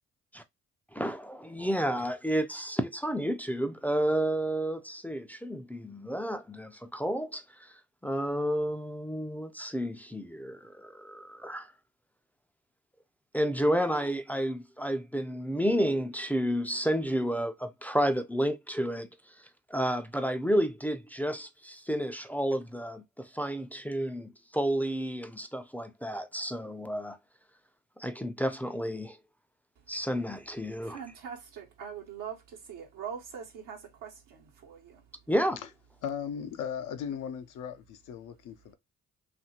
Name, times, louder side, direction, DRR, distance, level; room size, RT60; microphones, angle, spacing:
voice 1, 0.9-7.7 8.0-11.7 13.3-19.1 19.7-27.2 28.0-29.2 29.9-31.0 35.3-35.6, equal, 5° left, 0.4 m, -31 dB
voice 2, 30.8-35.0, right 7 dB, 80° right, 1.0 m, -42 dB
voice 3, 36.0-38.7, left 8 dB, 70° left, 0.6 m, -37 dB
2.7 x 2.5 x 2.8 m
hypercardioid pair, 50°, 32 cm